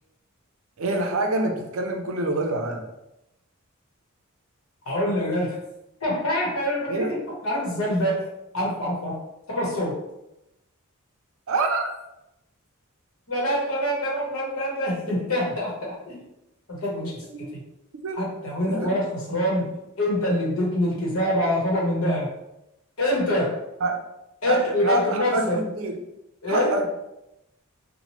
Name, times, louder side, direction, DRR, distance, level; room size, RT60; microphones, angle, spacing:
voice 1, 0.8-2.9 6.9-7.1 11.5-11.9 17.9-18.4 18.7-19.0 23.8-24.0 24.5-26.0 26.5-26.9, right 2 dB, 65° right, 4 dB, 0.5 m, -26 dB
voice 2, 4.8-5.6 6.0-7.2 7.4-8.3 8.5-9.2 9.5-10.0 13.3-16.2 16.7-17.6 18.2-19.7 20.0-22.3 23.0-23.6 24.4-25.6 26.4-26.8, left 1 dB, 70° left, -4 dB, 1.0 m, -25 dB
2.9 x 2.1 x 2.9 m, 0.89 s
head